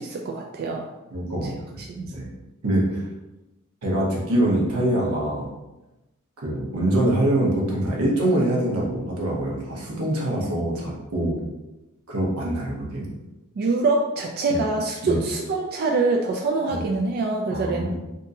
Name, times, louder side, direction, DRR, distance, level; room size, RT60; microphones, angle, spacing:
voice 1, 0.0-0.9 1.4-1.5 1.8-2.1 13.6-17.9, right 3 dB, 45° right, 1 dB, 0.3 m, -25 dB
voice 2, 1.1-1.5 2.1-2.3 2.6-3.0 3.8-5.5 6.4-11.4 12.1-13.1 14.5-14.6 15.0-15.2 16.7-16.8 17.5-17.9, right 1 dB, 85° right, -3 dB, 1.0 m, -24 dB
3.6 x 2.7 x 2.7 m, 1.0 s
head